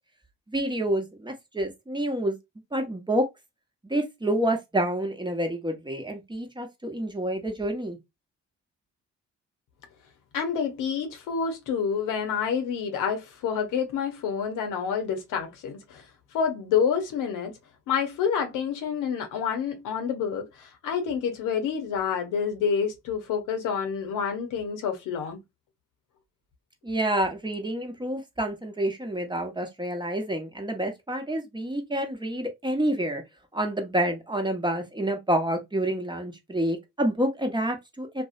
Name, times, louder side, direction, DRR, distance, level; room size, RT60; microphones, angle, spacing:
voice 1, 0.5-2.4 2.7-3.3 3.9-8.0 26.8-33.2 33.5-38.2, right 1 dB, 15° right, 0.8 m, -28 dB
voice 2, 10.3-16.0 16.3-17.5 17.9-25.4, left 7 dB, 80° left, 0.7 m, -28 dB
2.5 x 2.1 x 2.4 m
supercardioid pair, 55°, 31 cm